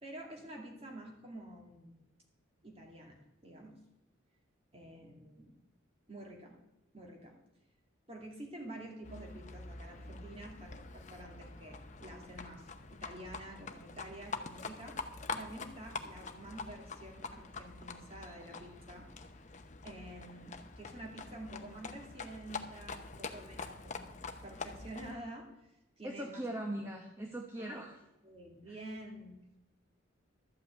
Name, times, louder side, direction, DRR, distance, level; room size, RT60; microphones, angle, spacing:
voice 1, 0.0-2.0 2.6-3.8 4.7-5.5 6.1-6.6 6.9-7.4 8.1-15.0 15.3-19.1 19.8-24.2 24.4-26.4 27.6-27.8 28.2-29.6, right 1 dB, 30° right, 1 dB, 2.3 m, -49 dB
Livestock farm animals working animals, 9.0-25.2, left 4 dB, 35° left, 0.8 m, -45 dB
voice 2, 26.0-28.0 28.7-28.8, right 1 dB, 15° right, 1 dB, 0.9 m, -40 dB
12.5 x 5.9 x 8.4 m, 0.92 s
head